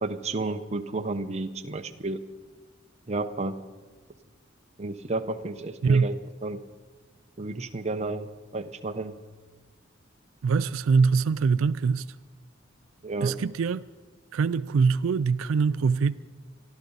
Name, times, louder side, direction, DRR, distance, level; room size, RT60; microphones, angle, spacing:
voice 1, 0.0-2.2 3.1-3.6 4.8-6.2 6.4-6.6 7.4-9.2 13.0-13.4, right 3 dB, 35° right, 0.7 m, -31 dB
voice 2, 10.4-12.1 13.2-13.8 14.3-16.2, right 5 dB, 90° right, 0.4 m, -23 dB
25.0 x 12.5 x 4.0 m
head